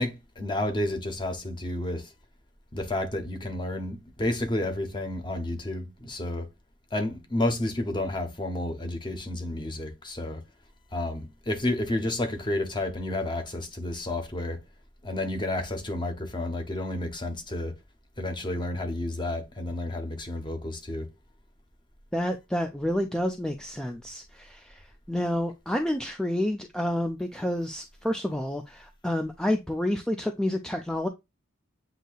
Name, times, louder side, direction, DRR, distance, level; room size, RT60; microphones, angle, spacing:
voice 1, 0.0-2.1 2.7-6.5 6.9-10.4 10.9-14.6 15.0-17.7 18.2-21.1, left 1 dB, 25° left, 0.9 m, -31 dB
voice 2, 22.1-31.1, left 1 dB, 5° left, 0.4 m, -29 dB
7.9 x 2.7 x 2.3 m
head